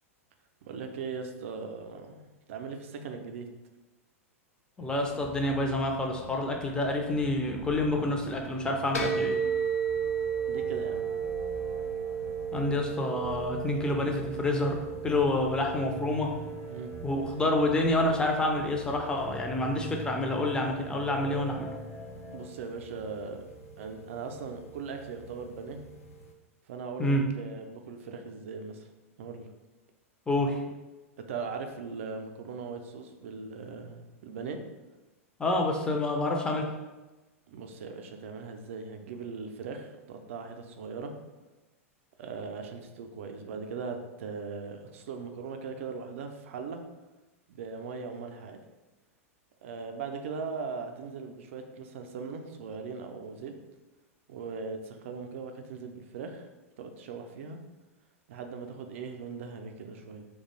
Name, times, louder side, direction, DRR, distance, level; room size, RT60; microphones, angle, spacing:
voice 1, 0.6-2.2 2.5-3.5 10.5-11.1 16.7-16.9 22.3-23.4 23.8-25.8 26.7-28.9 29.2-29.5 31.3-34.6 37.5-41.1 42.2-46.8 47.5-48.6 49.6-53.5 54.3-56.5 56.8-57.6 58.3-60.3, right 5 dB, 60° right, 5 dB, 0.4 m, -39 dB
sound 1, 4.8-22.5, left 2 dB, 50° left, 0.8 m, -45 dB
voice 2, 4.8-9.4 12.5-14.8 15.0-16.3 17.0-21.7 27.0-27.3 30.3-30.6 35.4-36.7, left 1 dB, 10° left, 1 dB, 0.4 m, -28 dB
sound 2, 8.9-26.3, right 6 dB, 80° left, 0.4 m, -36 dB
2.3 x 2.2 x 3.0 m, 1.1 s
hypercardioid pair, 100°, 8 cm